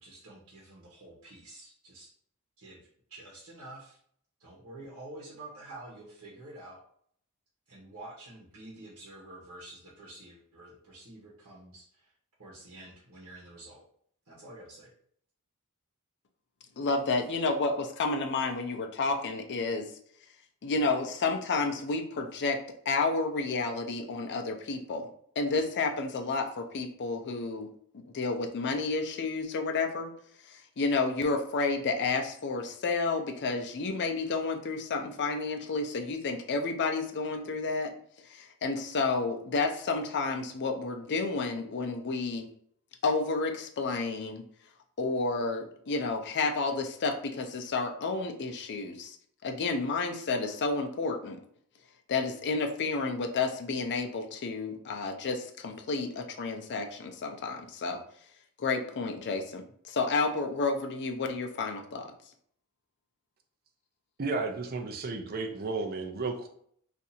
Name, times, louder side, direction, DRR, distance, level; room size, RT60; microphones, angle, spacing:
voice 1, 0.0-2.1 2.6-2.8 3.1-4.0 4.4-6.8 7.7-12.1 12.4-13.8 14.3-14.9, right 2 dB, 70° right, -5 dB, 1.0 m, -48 dB
voice 2, 16.8-19.9 20.6-22.6 22.9-25.1 25.4-27.7 27.9-30.1 30.4-37.9 38.3-42.5 43.0-44.4 45.0-49.2 49.4-51.4 52.1-58.0 58.6-62.1, left 3 dB, 50° left, 5 dB, 0.5 m, -31 dB
voice 3, 64.2-66.5, right 3 dB, 45° right, 4 dB, 0.5 m, -33 dB
2.7 x 2.5 x 4.1 m, 0.63 s
head